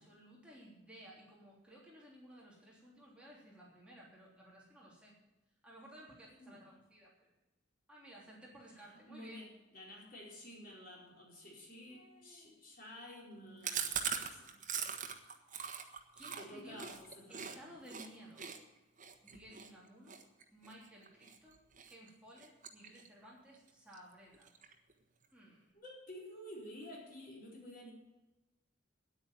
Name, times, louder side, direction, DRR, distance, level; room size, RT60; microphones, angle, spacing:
voice 1, 0.0-5.2 5.6-7.3 7.9-9.4 11.9-12.6 16.2-16.9 17.3-18.6 19.2-20.2 20.5-24.5 25.3-25.7, equal, 5° right, -5 dB, 3.3 m, -56 dB
voice 2, 6.3-6.7 8.8-14.6 16.4-17.8 25.7-27.9, left 1 dB, 50° left, -3 dB, 4.4 m, -52 dB
Chewing mastication, 13.6-17.6 17.9-18.1 18.4-21.4 21.8-22.1 22.4-23.3 23.5-23.6 23.9-24.0 24.3-24.9, right 7 dB, 45° right, 1.3 m, -41 dB
10.0 x 9.0 x 9.2 m, 1.1 s
head